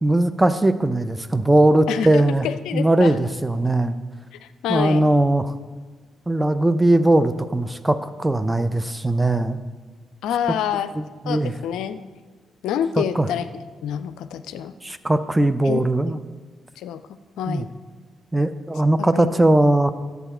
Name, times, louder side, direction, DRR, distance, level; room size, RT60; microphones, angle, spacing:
voice 1, 0.0-2.5 2.7-4.0 4.7-5.5 6.3-9.6 11.0-11.5 13.0-13.3 14.8-16.2 17.5-17.6 18.3-19.9, right 1 dB, 15° right, 12 dB, 0.7 m, -19 dB
voice 2, 1.9-3.1 4.4-5.1 10.2-10.9 11.3-12.0 12.6-13.5 13.8-14.7 15.6-15.9 16.1-16.2 16.8-17.0 17.4-17.7 19.0-19.3, left 9 dB, 75° left, 11 dB, 0.4 m, -27 dB
11.0 x 8.2 x 4.4 m, 1.4 s
hypercardioid pair, 40°, 0 cm